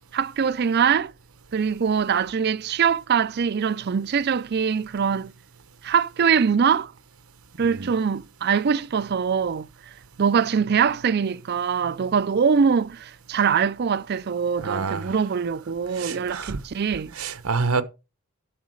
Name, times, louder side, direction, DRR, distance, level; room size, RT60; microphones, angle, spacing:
voice 1, 0.1-1.1 1.5-5.3 5.8-6.9 7.6-9.7 10.2-17.1, right 6 dB, 50° right, 0.4 m, -23 dB
voice 2, 7.6-7.9 14.6-15.2 15.9-16.6 17.1-17.8, right 4 dB, 90° right, 1.0 m, -28 dB
12.0 x 4.1 x 6.4 m
head